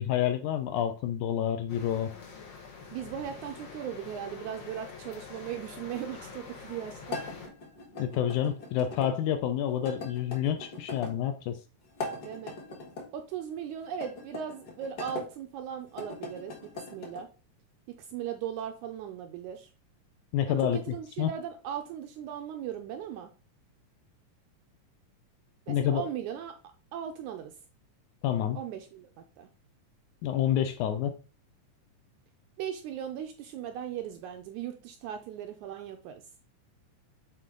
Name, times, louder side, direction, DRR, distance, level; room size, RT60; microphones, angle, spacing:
voice 1, 0.0-2.1 8.0-11.6 20.3-21.3 25.7-26.0 28.2-28.6 30.2-31.1, left 10 dB, 75° left, 8 dB, 1.9 m, -28 dB
sound 1, 1.7-7.5, left 5 dB, 60° left, 1.4 m, -46 dB
voice 2, 2.9-7.2 12.2-12.6 13.1-17.3 17.9-19.7 20.5-23.3 25.7-26.6 26.9-27.5 28.5-29.1 29.4-29.5 32.6-36.2, right 9 dB, 80° right, 6 dB, 1.8 m, -38 dB
sound 2, 7.1-9.1 9.8-11.2 11.9-13.1 13.9-15.3 15.9-17.2, left 3 dB, 40° left, 1.6 m, -40 dB
7.4 x 4.2 x 3.8 m, 0.35 s
omnidirectional pair, 3.9 m